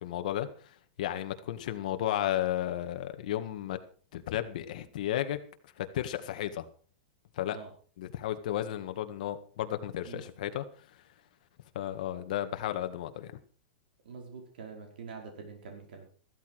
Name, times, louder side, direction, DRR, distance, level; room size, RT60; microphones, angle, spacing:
voice 1, 0.0-3.8 4.1-5.4 5.8-6.7 7.4-7.6 8.0-10.6 11.8-13.3, left 12 dB, 55° left, 8 dB, 1.8 m, -33 dB
voice 2, 14.0-16.1, right 5 dB, 75° right, 3 dB, 5.0 m, -45 dB
14.5 x 13.5 x 4.8 m, 0.41 s
supercardioid pair, 170°, 5 cm